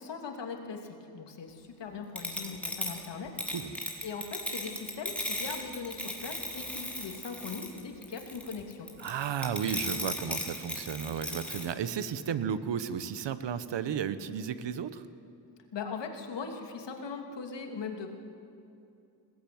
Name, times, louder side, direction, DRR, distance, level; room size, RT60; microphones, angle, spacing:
voice 1, 0.0-3.5 4.0-8.9 15.7-18.1, left 5 dB, 75° left, 3 dB, 3.0 m, -40 dB
arroz cayendo, 2.2-11.7, left 1 dB, 5° left, 4.0 m, -36 dB
voice 2, 9.0-15.0, right 8 dB, 75° right, 13 dB, 1.2 m, -33 dB
20.5 x 18.5 x 9.5 m, 2.6 s
cardioid pair, 75°, 43 cm